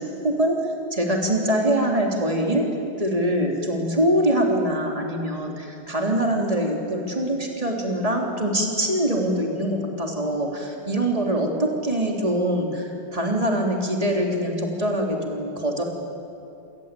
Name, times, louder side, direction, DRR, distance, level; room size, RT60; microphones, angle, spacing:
voice 1, 0.2-0.6 0.9-2.7 3.0-15.8, right 1 dB, 15° right, 1 dB, 3.2 m, -23 dB
27.5 x 17.0 x 9.1 m, 2.6 s
omnidirectional pair, 2.3 m